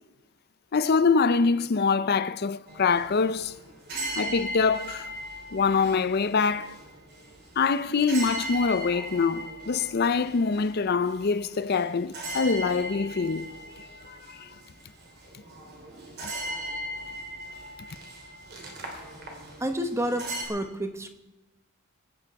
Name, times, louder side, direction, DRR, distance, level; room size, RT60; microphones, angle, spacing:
voice 1, 0.7-3.6 4.2-5.1 5.5-6.8 7.6-13.5 14.1-14.5, left 5 dB, 45° left, 0.5 m, -24 dB
sound 1, 2.7-20.5, right 1 dB, 45° right, 3.2 m, -39 dB
voice 2, 19.6-21.1, equal, 10° right, 1.0 m, -30 dB
22.0 x 9.1 x 4.7 m
head